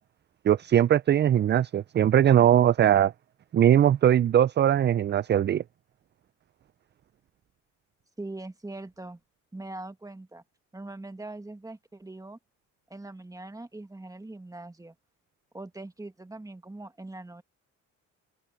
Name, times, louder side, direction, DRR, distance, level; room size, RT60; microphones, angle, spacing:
voice 1, 0.4-3.1 3.5-5.6, right 10 dB, 35° right, 0.4 m, -20 dB
voice 2, 8.2-9.2 9.5-10.4 10.7-12.4 12.9-15.0 15.5-17.4, right 2 dB, 10° right, 1.9 m, -41 dB
cardioid pair, 90°, 30 cm